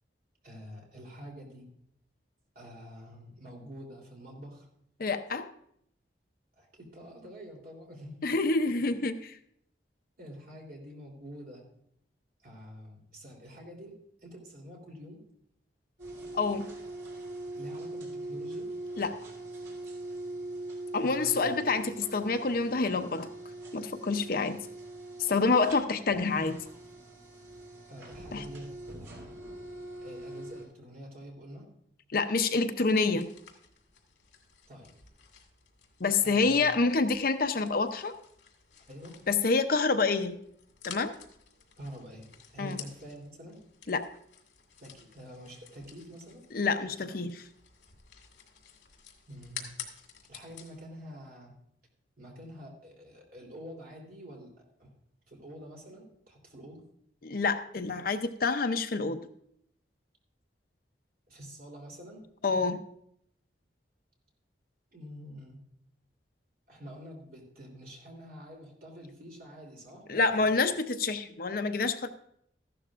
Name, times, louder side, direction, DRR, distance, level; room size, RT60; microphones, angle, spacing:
voice 1, 0.4-1.7 2.5-4.7 6.6-8.3 10.2-11.7 12.4-14.0 14.2-15.2 17.5-18.7 21.0-21.5 27.9-29.4 30.0-31.7 34.7-34.9 36.2-36.7 38.9-39.2 41.8-43.6 44.8-46.4 46.8-47.2 49.3-49.7 50.3-51.6 52.2-54.9 55.3-56.8 61.3-62.3 64.9-65.6 66.7-70.5, equal, 55° right, 0 dB, 3.3 m, -47 dB
voice 2, 5.0-5.5 8.2-9.4 16.3-16.7 19.0-19.2 20.9-23.3 23.7-24.6 25.2-26.6 28.3-28.4 32.1-33.3 36.0-38.1 39.3-40.4 40.8-41.1 42.6-42.8 43.9-44.0 46.5-47.4 57.2-59.2 62.4-62.8 70.1-72.1, left 4 dB, 55° left, 8 dB, 0.7 m, -27 dB
sound 1, 16.0-30.7, right 2 dB, 80° right, 3.7 m, -42 dB
sound 2, 32.8-50.8, left 8 dB, 80° left, 2.1 m, -51 dB
14.5 x 12.0 x 2.5 m, 0.70 s
head